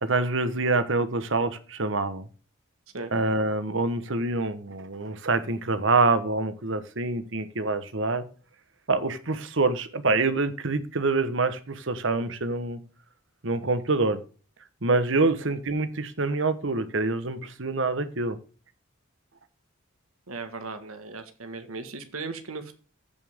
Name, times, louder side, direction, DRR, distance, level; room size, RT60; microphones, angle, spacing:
voice 1, 0.0-2.3 3.1-8.2 8.9-12.8 13.4-14.2 14.8-18.4, right 3 dB, 60° right, 12 dB, 1.1 m, -26 dB
voice 2, 20.3-22.7, right 3 dB, 90° right, 8 dB, 1.7 m, -37 dB
15.0 x 5.6 x 3.6 m, 0.37 s
head